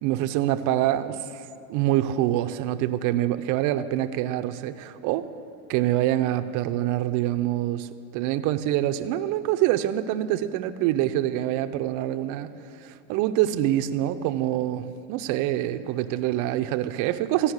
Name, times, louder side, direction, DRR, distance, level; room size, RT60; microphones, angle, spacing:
voice 1, 0.0-5.3 5.7-7.9 8.1-12.5 12.8-17.5, right 13 dB, 40° right, 10 dB, 0.6 m, -25 dB
14.5 x 5.7 x 9.6 m, 2.5 s
hypercardioid pair, 115°, 48 cm